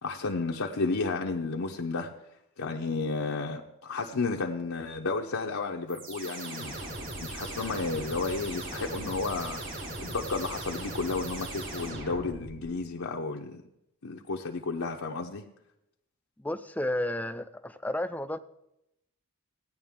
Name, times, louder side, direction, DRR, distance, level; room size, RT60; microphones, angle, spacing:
voice 1, 0.0-2.1 2.6-6.8 7.2-9.6 10.0-13.6 14.0-15.4, left 3 dB, 80° left, 0 dB, 0.8 m, -32 dB
sound 1, 5.9-12.7, right 1 dB, 60° right, 5.0 m, -39 dB
voice 2, 16.4-18.4, left 1 dB, 5° left, 11 dB, 0.4 m, -32 dB
16.5 x 9.4 x 3.6 m, 0.85 s
head